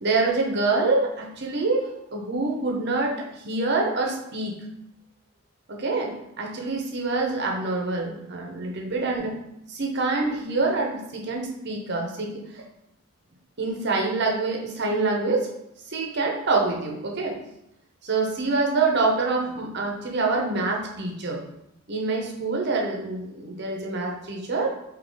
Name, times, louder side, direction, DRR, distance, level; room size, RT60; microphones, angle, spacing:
voice 1, 0.0-4.5 5.7-9.3 9.7-12.6 13.6-15.5 15.9-17.3 18.0-21.4 21.9-24.8, right 3 dB, 50° right, 0 dB, 0.7 m, -26 dB
3.6 x 2.8 x 3.8 m, 0.81 s
head